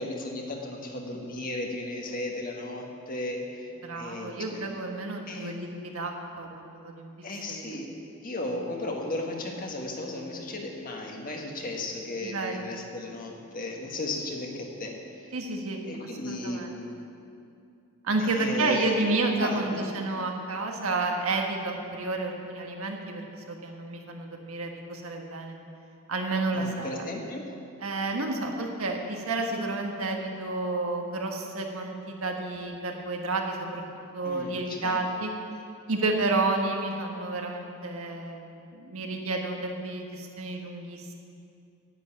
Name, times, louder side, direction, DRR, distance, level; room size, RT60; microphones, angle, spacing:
voice 1, 0.0-3.7 4.0-4.6 5.3-5.5 7.2-7.9 8.2-14.9 15.2-15.3 15.8-17.0 18.2-18.9 19.4-19.8 26.5-27.5 34.2-35.0, left 2 dB, 45° left, 0 dB, 1.6 m, -35 dB
voice 2, 3.8-7.1 7.5-7.7 8.5-8.6 12.2-12.6 15.3-16.7 18.0-25.6 26.1-27.1 27.8-33.8 34.1-35.3 35.9-41.1, right 2 dB, 85° right, 2 dB, 1.5 m, -30 dB
10.0 x 8.1 x 8.8 m, 2.5 s
head